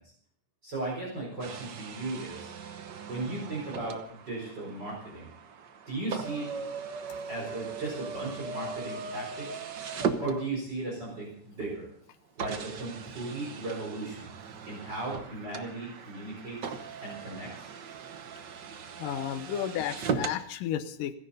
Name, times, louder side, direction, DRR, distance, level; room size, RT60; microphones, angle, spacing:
voice 1, 0.6-2.5 3.1-5.3 5.9-6.5 7.3-9.6 10.2-11.9 12.4-14.3 14.6-16.7 17.0-17.7, right 2 dB, 30° right, -5 dB, 4.9 m, -36 dB
sound 1, 1.4-10.9 11.6-11.7 12.4-20.4, right 5 dB, 70° right, 1.0 m, -38 dB
voice 2, 19.0-21.1, left 10 dB, 90° left, 11 dB, 2.6 m, -33 dB
29.5 x 11.0 x 4.1 m, 0.62 s
omnidirectional pair, 3.6 m